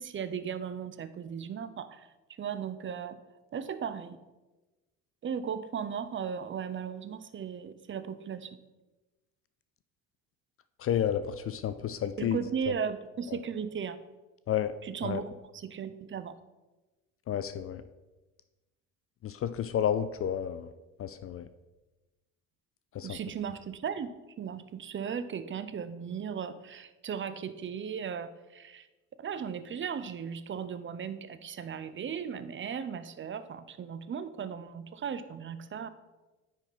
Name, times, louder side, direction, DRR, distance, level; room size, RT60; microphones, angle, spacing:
voice 1, 0.0-2.1 2.4-3.2 3.5-4.2 5.2-8.5 12.2-14.0 14.8-16.3 23.0-24.1 24.4-28.9 29.2-35.9, right 7 dB, 30° right, 13 dB, 0.6 m, -36 dB
voice 2, 10.8-12.4 12.7-12.8 13.3-13.4 14.5-14.7 15.0-15.2 17.3-17.8 19.2-20.7 21.0-21.5 22.9-23.2, left 9 dB, 35° left, 12 dB, 0.4 m, -31 dB
9.6 x 4.4 x 4.0 m, 1.1 s
hypercardioid pair, 65°, 42 cm